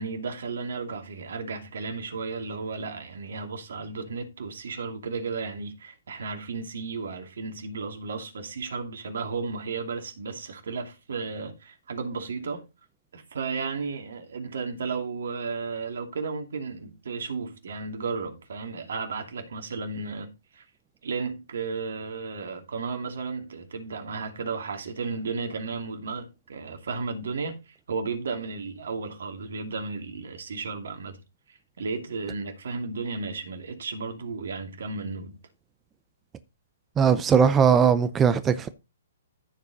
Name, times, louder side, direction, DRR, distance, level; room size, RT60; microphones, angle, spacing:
voice 1, 0.0-12.6 13.1-20.6 21.0-31.2 31.5-35.4, right 4 dB, 70° right, 2.6 m, -34 dB
voice 2, 37.0-38.7, right 7 dB, 15° right, 0.6 m, -19 dB
14.5 x 5.0 x 4.0 m
hypercardioid pair, 155°, 0 cm